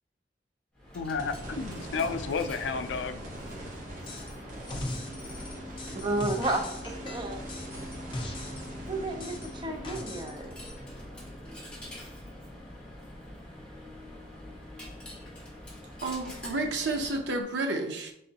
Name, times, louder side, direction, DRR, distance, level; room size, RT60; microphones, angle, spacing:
Coin (dropping), 0.7-17.4, left 1 dB, 5° left, 1.1 m, -45 dB
voice 1, 0.9-3.2, left 5 dB, 90° left, 10 dB, 0.4 m, -32 dB
sound 1, 1.2-13.5 14.0-14.1 17.4-17.5, right 1 dB, 50° right, 0.9 m, -43 dB
sound 2, 4.1-4.4 4.6-8.8 9.2-10.4 10.6-10.7, left 1 dB, 30° left, 0.7 m, -39 dB
voice 2, 5.9-7.4 8.9-10.5, right 2 dB, 25° right, 4 dB, 0.5 m, -32 dB
voice 3, 16.0-18.1, right 2 dB, 80° right, 3 dB, 0.7 m, -31 dB
4.6 x 3.1 x 2.8 m, 0.78 s
head